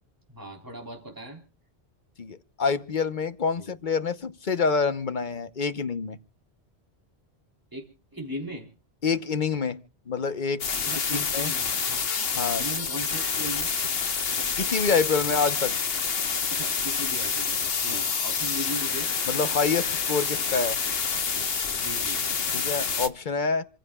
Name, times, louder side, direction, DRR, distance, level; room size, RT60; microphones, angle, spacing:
voice 1, 0.3-1.4 3.6-3.7 7.7-7.8 8.1-8.7 10.9-11.2 11.4-12.2 12.6-13.7 16.5-19.1 21.8-22.3, equal, 20° right, 3.5 m, -38 dB
voice 2, 2.2-6.2 9.0-9.8 10.1-10.6 11.1-11.5 12.4-12.6 14.6-15.7 17.9-18.0 19.3-20.8 22.5-23.6, left 5 dB, 50° left, 1.1 m, -27 dB
sound 1, 10.6-23.1, left 6 dB, 65° left, 1.3 m, -28 dB
28.0 x 15.0 x 2.4 m
omnidirectional pair, 1.1 m